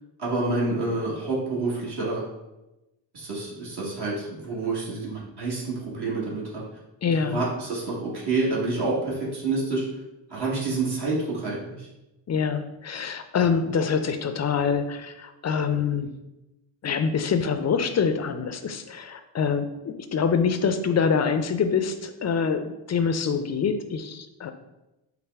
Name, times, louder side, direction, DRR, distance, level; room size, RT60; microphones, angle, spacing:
voice 1, 0.2-2.2 3.1-6.6 7.1-9.9 10.3-11.9, right 3 dB, 60° right, -5 dB, 1.4 m, -28 dB
voice 2, 7.0-7.4 12.3-16.2 16.8-24.5, left 6 dB, 40° left, 8 dB, 0.4 m, -25 dB
5.6 x 2.0 x 3.4 m, 0.98 s
cardioid pair, 80°, 45 cm